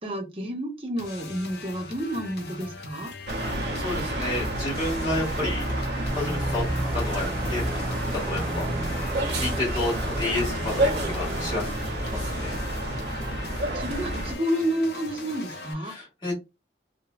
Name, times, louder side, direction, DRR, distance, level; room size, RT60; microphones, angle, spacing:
voice 1, 0.0-3.1 13.4-15.9, equal, 30° right, 1 dB, 0.7 m, -30 dB
sound 1, 1.0-15.7, left 3 dB, 60° left, 0.5 m, -41 dB
sound 2, 3.3-14.4, right 1 dB, 70° right, 0.5 m, -29 dB
voice 2, 3.7-6.6 6.9-7.8 8.1-9.0 9.4-11.7 12.0-12.6 15.8-16.3, left 2 dB, 25° left, -7 dB, 1.6 m, -31 dB
sound 3, 6.1-11.6, right 1 dB, 5° left, 0.4 m, -37 dB
3.0 x 2.1 x 2.3 m, 0.25 s
head